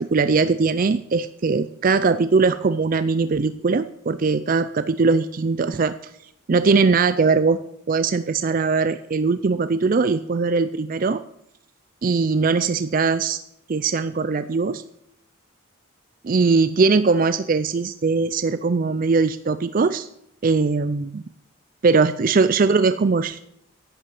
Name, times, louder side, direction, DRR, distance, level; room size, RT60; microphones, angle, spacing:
voice 1, 0.0-6.0 6.5-7.6 7.9-11.2 12.0-13.4 13.7-14.8 16.2-20.1 20.4-21.2 21.8-23.4, right 4 dB, 40° right, 12 dB, 0.4 m, -20 dB
11.0 x 9.4 x 7.6 m, 0.75 s
head